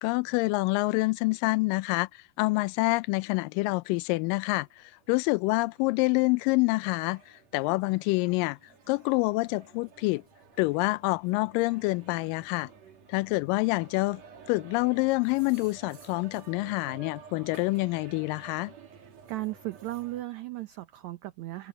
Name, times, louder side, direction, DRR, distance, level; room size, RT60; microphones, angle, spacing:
voice 1, 0.0-7.2 7.5-8.6 8.9-10.2 10.6-12.7 13.1-14.2 14.5-18.7, left 24 dB, 80° left, 2.1 m, -27 dB
sound 1, 3.8-3.9 4.2-20.2, right 6 dB, 50° right, 3.4 m, -53 dB
sound 2, 6.6-12.3, right 3 dB, 25° right, 5.7 m, -63 dB
voice 2, 19.3-21.7, right 17 dB, 75° right, 1.7 m, -36 dB
omnidirectional pair, 4.2 m